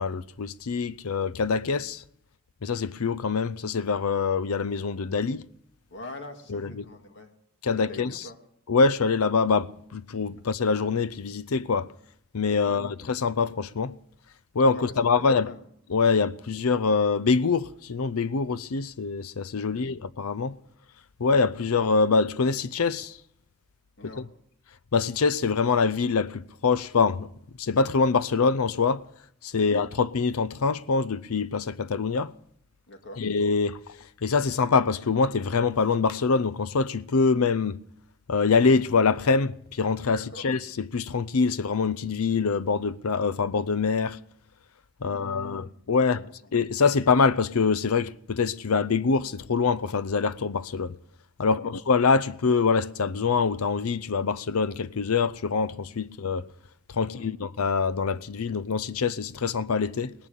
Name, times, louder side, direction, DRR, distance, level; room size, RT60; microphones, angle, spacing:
voice 1, 0.0-2.0 2.6-5.4 6.5-6.8 7.6-8.2 8.7-11.9 12.3-13.9 14.5-15.5 15.9-20.6 21.2-23.2 24.2-24.3 24.9-27.3 27.6-29.0 29.4-32.3 33.2-33.8 34.2-37.8 38.3-40.6 40.9-44.2 45.0-46.2 46.5-51.0 51.4-56.4 56.9-60.1, left 4 dB, 75° left, 0.6 m, -24 dB
voice 2, 5.9-7.3 7.7-8.5 12.6-13.0 14.7-15.7 19.7-19.9 24.0-24.3 29.6-29.8 32.9-33.3 40.1-40.5 45.0-45.7 46.1-46.5 51.4-51.7 57.0-57.3, left 1 dB, 55° left, 2.0 m, -44 dB
18.5 x 11.0 x 6.8 m
head